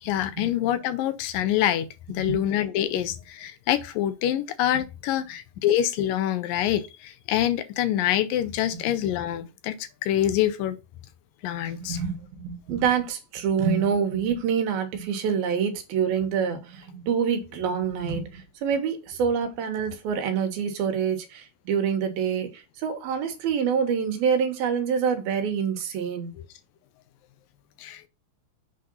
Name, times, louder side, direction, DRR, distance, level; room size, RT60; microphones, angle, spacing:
voice 1, 0.0-9.7 10.0-10.8 11.4-12.0 27.8-28.1, left 11 dB, 80° left, 2.2 m, -26 dB
voice 2, 11.7-26.3, right 7 dB, 85° right, 3.2 m, -26 dB
7.8 x 3.8 x 5.4 m
omnidirectional pair, 4.2 m